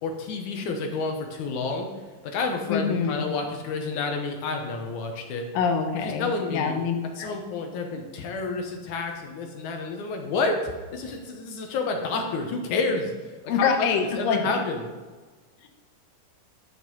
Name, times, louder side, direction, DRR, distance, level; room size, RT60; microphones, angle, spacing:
voice 1, 0.0-1.9 2.2-5.5 6.0-6.8 7.2-13.9 14.2-14.8, left 3 dB, 70° left, 3 dB, 2.3 m, -29 dB
voice 2, 2.7-3.2 5.5-7.3 13.5-14.4 15.6-15.7, left 6 dB, 90° left, 4 dB, 2.8 m, -25 dB
11.5 x 5.5 x 6.2 m, 1.3 s
omnidirectional pair, 3.9 m